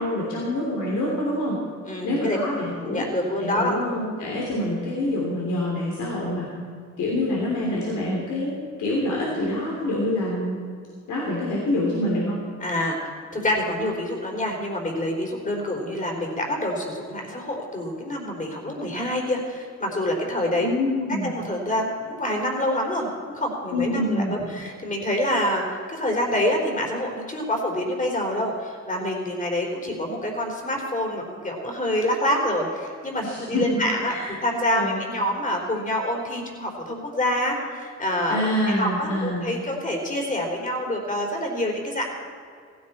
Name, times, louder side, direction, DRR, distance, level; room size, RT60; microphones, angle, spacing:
voice 1, 0.0-1.6 2.0-3.0 3.4-6.5 7.0-10.6 11.1-12.4 20.6-21.3 23.7-24.3 33.2-33.8 34.1-34.3 34.8-35.0 38.3-39.5, left 1 dB, 80° left, -4 dB, 3.4 m, -26 dB
voice 2, 1.9-2.4 2.8-3.8 4.5-4.7 12.6-20.7 21.2-34.1 34.4-42.0, left 1 dB, 25° left, 1 dB, 4.0 m, -27 dB
16.5 x 16.0 x 4.4 m, 2.2 s
cardioid pair, 90°, 30 cm